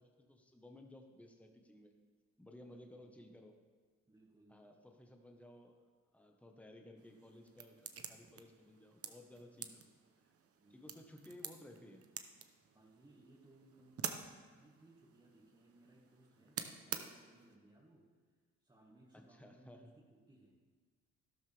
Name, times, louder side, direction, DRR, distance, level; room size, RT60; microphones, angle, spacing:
voice 1, 0.0-1.9 2.4-3.6 4.5-5.9 6.1-9.9 10.2-10.3 10.7-12.0 16.9-17.1 19.1-19.9, left 1 dB, 5° left, 3 dB, 1.4 m, -57 dB
voice 2, 2.6-3.1 4.1-4.6 10.6-11.1 12.7-18.2 18.6-20.6, right 2 dB, 15° right, -4 dB, 2.0 m, -64 dB
sound 1, 7.0-17.6, right 7 dB, 50° right, 1.0 m, -49 dB
12.5 x 12.5 x 3.6 m, 1.5 s
cardioid pair, 90°, 30 cm